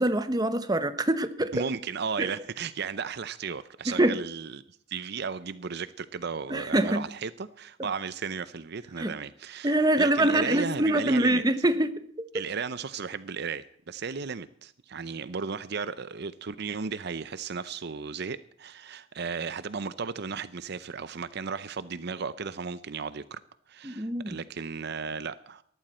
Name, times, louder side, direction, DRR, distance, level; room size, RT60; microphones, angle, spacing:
voice 1, 0.0-1.5 2.2-2.3 3.9-4.2 6.5-7.0 9.0-9.1 9.6-12.0 23.8-24.4, right 1 dB, 20° right, 1.1 m, -24 dB
voice 2, 1.5-4.6 4.9-11.4 12.3-23.4 23.7-25.6, right 5 dB, 60° right, 0.6 m, -35 dB
19.0 x 14.0 x 4.3 m
head